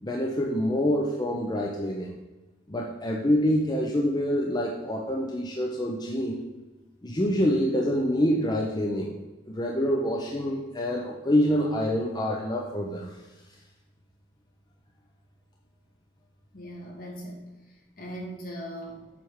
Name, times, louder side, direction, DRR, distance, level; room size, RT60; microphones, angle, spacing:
voice 1, 0.0-2.1 2.7-6.4 7.0-9.1 9.5-13.1, equal, 25° left, -1 dB, 0.6 m, -26 dB
voice 2, 16.5-19.1, equal, 50° left, 0 dB, 1.6 m, -40 dB
7.5 x 3.4 x 6.4 m, 1.1 s
head